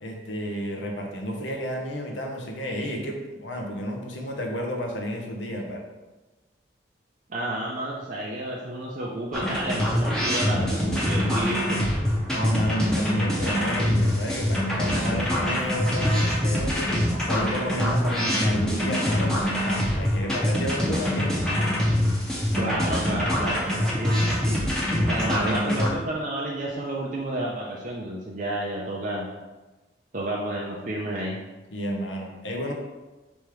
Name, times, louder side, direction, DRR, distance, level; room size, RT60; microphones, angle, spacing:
voice 1, 0.0-5.8 12.3-21.4 25.1-25.8 31.7-32.7, equal, 85° left, 1 dB, 0.8 m, -31 dB
voice 2, 7.3-11.8 22.6-24.6 25.1-29.3 30.1-31.4, right 1 dB, 45° right, -4 dB, 0.5 m, -31 dB
sound 1, 9.3-25.9, left 1 dB, 5° left, 0.7 m, -24 dB
3.5 x 3.1 x 4.8 m, 1.2 s
head